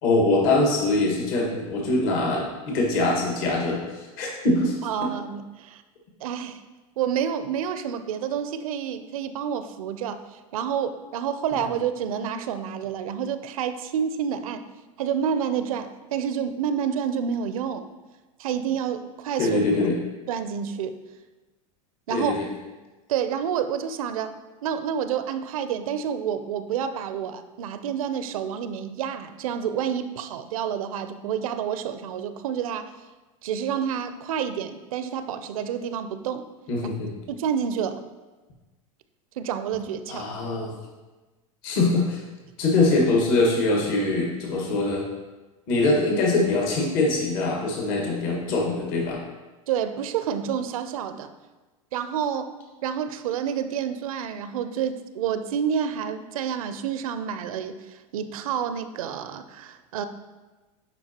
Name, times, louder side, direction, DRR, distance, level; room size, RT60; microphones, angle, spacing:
voice 1, 0.0-4.7 5.0-5.1 19.4-19.9 22.1-22.5 36.7-37.1 40.1-40.7 41.6-42.2 42.6-45.0 45.7-49.2, left 2 dB, 60° left, -1 dB, 1.5 m, -23 dB
voice 2, 4.8-5.8 6.2-6.6 7.0-10.2 10.5-14.7 15.0-17.9 18.4-19.6 20.3-21.0 22.1-22.4 23.1-24.3 24.6-32.9 33.4-36.4 37.3-38.0 39.4-40.3 49.7-51.3 51.9-52.5 52.8-60.1, right 8 dB, 80° right, 10 dB, 0.5 m, -29 dB
9.0 x 4.4 x 2.8 m, 1.2 s
hypercardioid pair, 105°, 18 cm